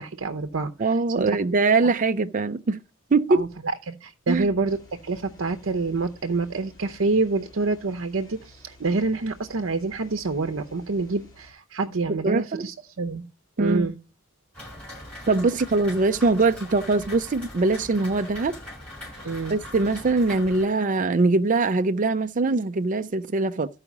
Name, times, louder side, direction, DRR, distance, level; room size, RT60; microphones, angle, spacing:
voice 1, 0.0-1.4 3.3-3.5 3.9-4.8 5.0-13.2 13.6-14.0 19.2-19.6, right 3 dB, 75° right, 0.7 m, -27 dB
voice 2, 0.8-2.8 3.1-3.4 4.3-4.5 12.1-12.7 13.6-13.9 15.3-18.5 19.5-23.7, right 3 dB, 40° right, 0.5 m, -22 dB
sound 1, 4.6-11.5, left 1 dB, 20° left, 3.0 m, -53 dB
Rain, 14.5-20.6, left 1 dB, 5° left, 7.2 m, -41 dB
13.0 x 4.9 x 6.0 m
head